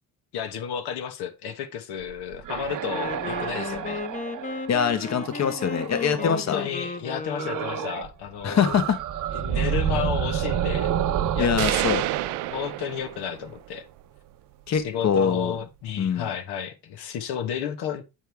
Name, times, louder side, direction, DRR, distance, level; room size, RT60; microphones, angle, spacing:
voice 1, 0.3-4.0 6.1-8.8 9.3-10.9 11.3-12.0 12.5-13.8 14.7-18.0, left 8 dB, 80° left, 1.3 m, -32 dB
sound 1, 2.1-6.3 7.4-8.1 8.4-13.3, right 10 dB, 50° right, 1.0 m, -30 dB
Wind instrument woodwind instrument, 2.8-8.0, left 4 dB, 20° left, 0.8 m, -35 dB
voice 2, 4.7-6.6 8.4-9.0 11.4-12.0 14.7-15.6 16.0-16.3, left 7 dB, 45° left, 1.1 m, -24 dB
sound 2, 11.6-13.5, right 16 dB, 90° right, 0.6 m, -28 dB
8.9 x 4.7 x 3.5 m
cardioid pair, 95°, 39 cm